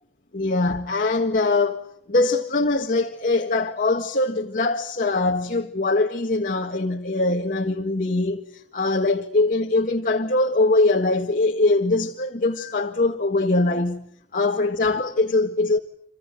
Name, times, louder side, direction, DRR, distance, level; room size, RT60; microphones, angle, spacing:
voice 1, 0.3-14.1 14.3-15.8, left 2 dB, 45° left, 1.7 m, -22 dB
27.5 x 27.5 x 7.8 m
head